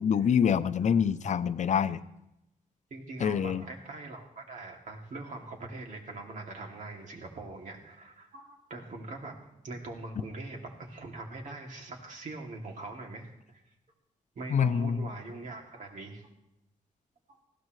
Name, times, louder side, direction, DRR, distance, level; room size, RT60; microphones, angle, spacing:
voice 1, 0.0-2.0 3.2-3.6 14.5-15.0, left 7 dB, 60° left, 13 dB, 0.6 m, -26 dB
voice 2, 2.9-9.3 9.6-13.6 14.3-16.3, right 2 dB, 65° right, 1 dB, 2.7 m, -42 dB
19.5 x 15.5 x 3.3 m, 0.86 s
wide cardioid pair, 140°, 14 cm